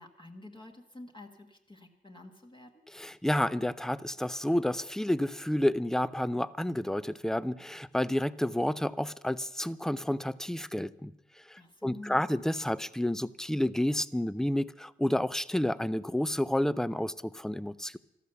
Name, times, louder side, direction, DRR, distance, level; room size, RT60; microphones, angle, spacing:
voice 1, 0.0-2.8 11.6-12.3, left 2 dB, 25° left, 2 dB, 1.4 m, -49 dB
voice 2, 2.9-11.1 11.5-18.0, left 1 dB, ahead, 17 dB, 0.5 m, -30 dB
13.5 x 12.5 x 6.9 m, 0.86 s
cardioid pair, 70°, 20 cm